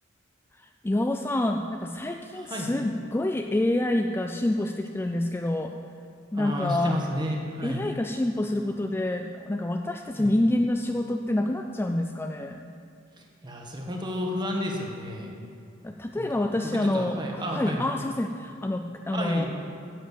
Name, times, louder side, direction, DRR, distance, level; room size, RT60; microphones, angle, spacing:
voice 1, 0.5-5.7 6.3-7.0 7.6-12.6 15.8-19.4, left 1 dB, 10° left, 4 dB, 0.4 m, -27 dB
voice 2, 2.4-2.7 6.3-7.9 10.1-10.3 13.2-15.3 16.2-17.9 19.1-19.5, equal, 25° right, 0 dB, 1.6 m, -32 dB
10.0 x 7.9 x 8.4 m, 2.4 s
head